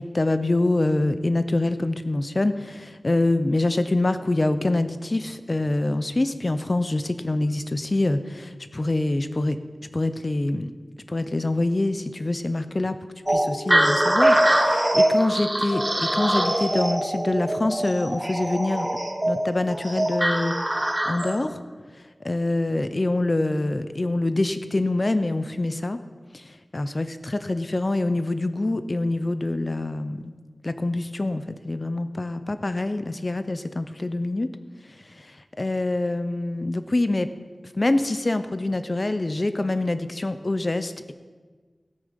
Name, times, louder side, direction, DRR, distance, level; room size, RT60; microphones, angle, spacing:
voice 1, 0.0-9.6 9.9-10.7 11.1-13.0 13.3-18.9 19.2-20.6 21.0-21.6 22.2-26.0 26.3-30.3 30.6-34.5 35.1-37.3 37.7-41.1, left 2 dB, 40° left, 10 dB, 0.7 m, -25 dB
sound 1, 13.3-21.4, right 1 dB, 20° right, 1.4 m, -23 dB
17.5 x 7.1 x 5.3 m, 1.4 s
wide cardioid pair, 70°, 0 cm